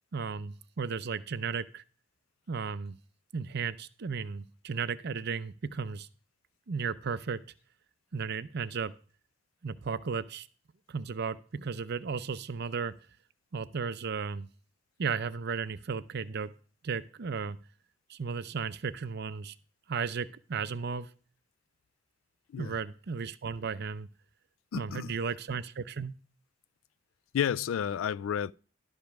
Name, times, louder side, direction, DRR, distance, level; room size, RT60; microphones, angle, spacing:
voice 1, 0.1-1.8 2.5-3.0 3.3-6.1 6.7-7.4 8.1-8.9 9.6-10.5 10.9-12.9 13.5-14.5 15.0-16.5 16.8-17.6 18.1-19.5 19.9-21.1 22.6-24.1 24.7-26.1, right 5 dB, 55° right, 0.5 m, -34 dB
voice 2, 24.7-25.2 27.3-28.5, left 8 dB, 85° left, 0.3 m, -31 dB
11.5 x 5.2 x 5.9 m
head